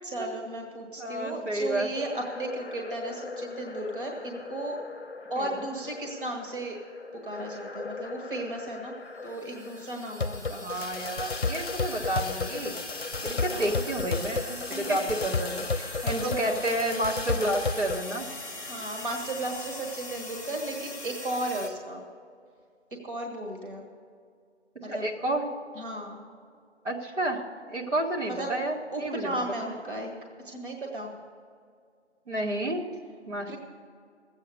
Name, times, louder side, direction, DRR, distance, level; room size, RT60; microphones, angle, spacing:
voice 1, 0.0-4.8 5.3-6.7 7.1-8.9 9.2-10.6 13.3-13.8 14.7-15.2 16.3-16.6 18.7-22.0 23.0-23.8 24.8-25.1 25.7-26.2 28.2-28.5 28.9-30.1 30.4-31.1 33.5-33.6, right 1 dB, 45° right, 1 dB, 1.6 m, -35 dB
voice 2, 1.0-1.9 5.4-5.6 10.5-12.8 13.2-18.3 24.8-25.5 26.8-27.4 27.7-29.3 32.3-32.8 33.3-33.6, right 1 dB, 75° right, -1 dB, 2.1 m, -30 dB
sound 1, 2.0-18.0, left 4 dB, 55° left, 0.7 m, -35 dB
sound 2, 9.3-21.7, left 2 dB, 15° right, 0.7 m, -41 dB
14.0 x 8.4 x 6.7 m, 2.2 s
figure-of-eight pair, 155°, 36 cm